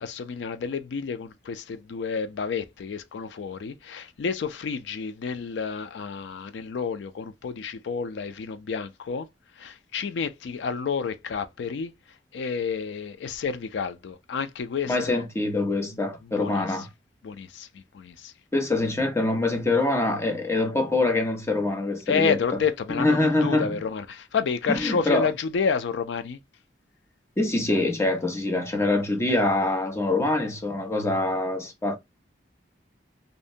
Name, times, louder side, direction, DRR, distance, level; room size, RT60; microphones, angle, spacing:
voice 1, 0.0-9.3 9.6-11.9 12.3-15.2 15.9-16.9 17.2-18.3 22.1-26.4, left 5 dB, 90° left, 0.4 m, -30 dB
voice 2, 14.9-16.9 18.5-22.4 22.9-23.8 24.7-25.3 27.4-32.0, left 2 dB, 15° left, 0.6 m, -24 dB
2.6 x 2.1 x 2.5 m
head